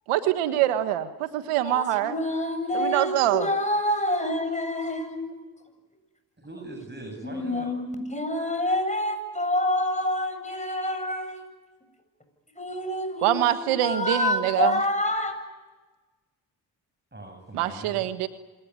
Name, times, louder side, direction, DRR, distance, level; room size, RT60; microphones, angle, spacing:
voice 1, 0.1-2.1 2.7-3.5 13.2-14.8 17.5-18.3, right 13 dB, 85° right, 11 dB, 1.6 m, -24 dB
voice 2, 1.6-5.4 7.2-11.5 12.6-15.3, left 1 dB, 15° left, 6 dB, 7.8 m, -27 dB
voice 3, 6.4-7.7 17.1-18.1, right 2 dB, 20° right, 3 dB, 7.4 m, -41 dB
26.5 x 19.5 x 9.6 m, 1.2 s
hypercardioid pair, 45°, 50 cm